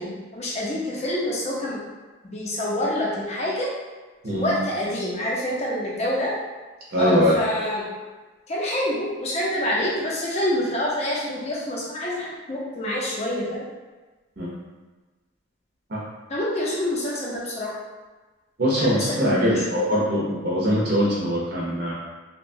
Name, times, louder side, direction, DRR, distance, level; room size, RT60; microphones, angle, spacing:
voice 1, 0.0-1.8 2.3-3.7 4.3-6.3 7.0-7.9 8.5-13.6 16.3-17.7 18.8-19.6, left 1 dB, 35° left, -5 dB, 0.5 m, -27 dB
voice 2, 6.9-7.4 14.4-14.5 15.9-16.0 18.6-21.9, equal, 50° right, -6 dB, 0.6 m, -22 dB
2.8 x 2.1 x 2.6 m, 1.3 s
head